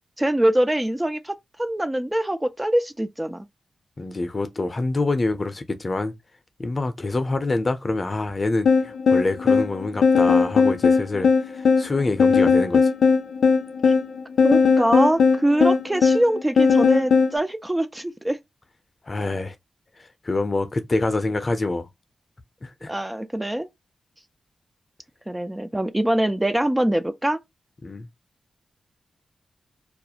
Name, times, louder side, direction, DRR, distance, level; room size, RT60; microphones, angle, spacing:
voice 1, 0.2-3.5 13.8-13.9 14.4-18.4 22.9-23.7 25.3-27.4, right 1 dB, 15° right, 0.3 m, -23 dB
voice 2, 4.0-6.1 6.6-12.9 19.1-19.6 20.2-21.9 22.6-22.9 27.8-28.1, left 2 dB, 40° left, 0.5 m, -26 dB
sound 1, 8.7-17.4, left 5 dB, 85° left, 0.4 m, -18 dB
2.4 x 2.1 x 2.8 m
cardioid pair, 55°, 0 cm